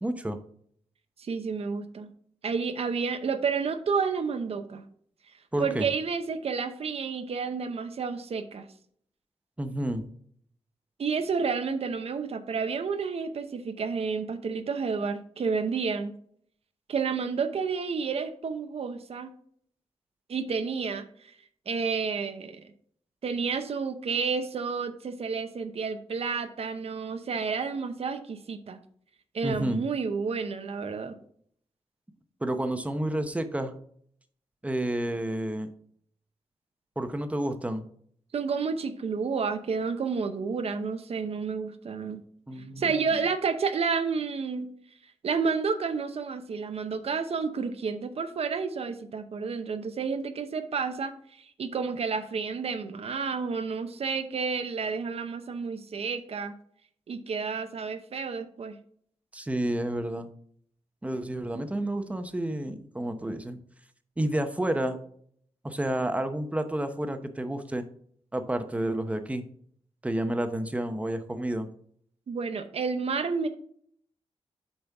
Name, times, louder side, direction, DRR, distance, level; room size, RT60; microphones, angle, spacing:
voice 1, 0.0-0.4 5.5-5.9 9.6-10.0 29.4-29.8 32.4-33.7 34.6-35.7 37.0-37.8 42.5-43.1 59.3-60.3 61.0-63.6 64.2-65.0 65.6-67.8 68.3-69.4 70.0-71.7, right 1 dB, 10° right, 8 dB, 0.8 m, -30 dB
voice 2, 1.2-2.1 2.4-4.8 5.6-8.7 11.0-16.1 16.9-19.3 20.3-21.3 21.7-22.6 23.2-28.8 29.3-31.2 38.3-42.2 42.8-44.7 45.2-56.5 57.1-58.8 72.3-73.5, right 5 dB, 60° right, 8 dB, 0.8 m, -30 dB
8.1 x 5.1 x 3.5 m, 0.62 s
wide cardioid pair, 120°, 11 cm